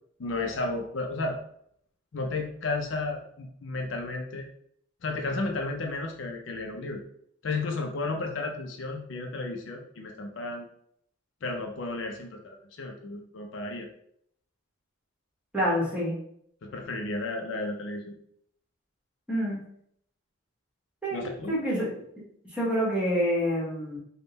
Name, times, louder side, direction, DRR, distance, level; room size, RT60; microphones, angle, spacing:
voice 1, 0.2-1.4 2.1-4.5 5.0-7.0 7.4-10.6 11.4-13.9 16.6-18.2 21.1-21.6, left 2 dB, 60° left, 3 dB, 0.5 m, -33 dB
voice 2, 15.5-16.2 19.3-19.6 21.0-21.9 22.5-24.0, equal, 5° right, -6 dB, 1.2 m, -27 dB
3.5 x 2.1 x 3.9 m, 0.68 s
head